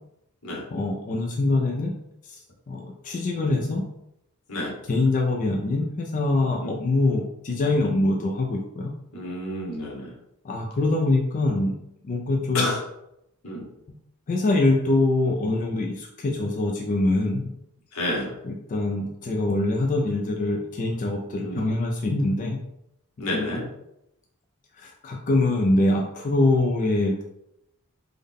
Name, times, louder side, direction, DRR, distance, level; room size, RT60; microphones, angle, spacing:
voice 1, 0.7-1.9 2.2-2.4 2.7-3.8 4.9-8.9 10.4-11.8 12.0-12.7 13.9-14.0 14.3-17.5 18.4-22.6 23.2-23.5 24.8-27.2, left 2 dB, 35° left, 1 dB, 0.4 m, -24 dB
voice 2, 9.1-10.1 12.5-12.8 13.4-13.6 17.9-18.3 21.4-21.7 23.2-23.7, left 1 dB, 80° left, -1 dB, 1.0 m, -29 dB
3.7 x 2.1 x 3.5 m, 0.82 s
head